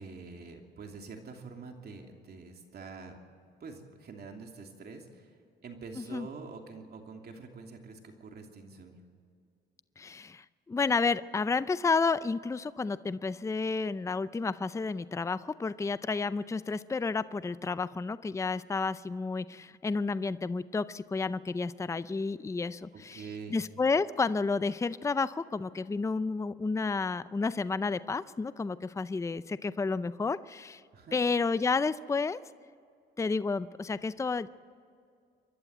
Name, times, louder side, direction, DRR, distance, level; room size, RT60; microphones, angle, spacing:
voice 1, 0.0-3.2 3.6-5.3 5.6-9.0 22.9-23.6 30.9-31.2, right 4 dB, 55° right, 3 dB, 2.8 m, -46 dB
voice 2, 6.0-6.3 10.0-30.8 31.1-32.4 33.2-34.5, left 4 dB, 15° left, 15 dB, 0.5 m, -31 dB
27.5 x 11.5 x 8.0 m, 2.3 s
cardioid pair, 90°, 20 cm